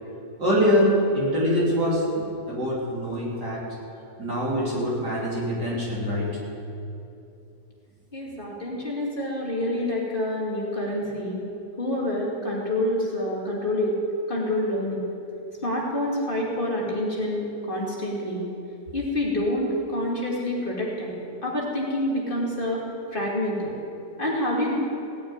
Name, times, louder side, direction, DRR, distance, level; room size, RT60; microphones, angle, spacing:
voice 1, 0.4-3.6 4.2-6.3, equal, 75° right, -5 dB, 4.1 m, -24 dB
voice 2, 8.1-11.4 11.8-13.9 14.3-15.0 15.6-18.5 18.9-21.1 21.4-22.8 23.1-23.7 24.2-24.7, left 1 dB, 30° left, -4 dB, 2.6 m, -27 dB
17.0 x 6.9 x 9.6 m, 2.8 s
omnidirectional pair, 1.8 m